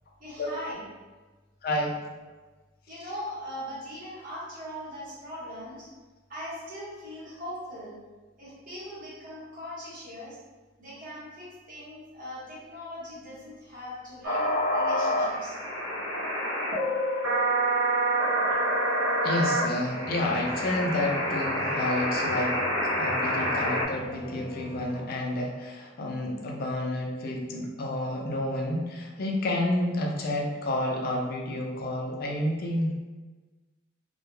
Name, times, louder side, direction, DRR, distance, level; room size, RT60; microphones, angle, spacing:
voice 1, 0.2-0.9 2.9-5.9 6.3-8.0 8.4-10.4 10.8-15.6, equal, 45° right, -7 dB, 0.9 m, -40 dB
voice 2, 1.6-2.0 19.2-22.6 23.0-32.9, left 1 dB, 50° left, 0 dB, 0.4 m, -30 dB
sound 1, 14.2-23.8, equal, 70° right, 0.6 m, -27 dB
sound 2, 20.0-25.0, right 1 dB, 15° right, 0.6 m, -44 dB
2.1 x 2.1 x 3.1 m, 1.3 s
head